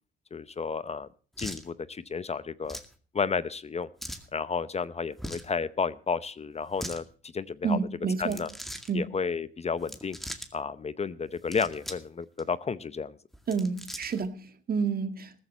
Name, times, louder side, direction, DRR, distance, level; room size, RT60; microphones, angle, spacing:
voice 1, 0.3-1.1 1.4-2.8 3.1-3.9 4.3-7.0 7.3-7.8 8.2-8.5 8.9-10.2 10.5-13.2, left 5 dB, 30° left, 16 dB, 0.7 m, -32 dB
sound 1, 1.4-1.7 2.6-2.9 4.0-4.3 5.1-5.5 6.6-7.0 8.2-8.9 9.8-10.5 11.3-12.1 12.4-12.5 13.3-14.3, equal, ahead, 2.1 m, -40 dB
voice 2, 7.6-8.4 8.9-9.0 13.5-15.4, right 5 dB, 50° right, 9 dB, 1.9 m, -29 dB
14.5 x 14.5 x 4.2 m, 0.40 s
cardioid pair, 90°, 20 cm